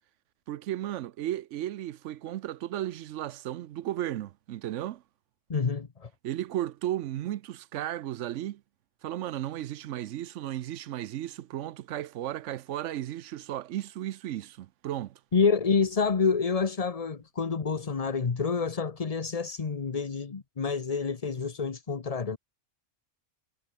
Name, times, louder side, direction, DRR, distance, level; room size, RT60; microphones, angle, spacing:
voice 1, 0.5-5.0 6.2-8.6 9.0-15.2, right 13 dB, 75° right, 0.9 m, -34 dB
voice 2, 5.5-6.1 15.3-22.4, left 5 dB, 30° left, 0.9 m, -28 dB
omnidirectional pair, 1.3 m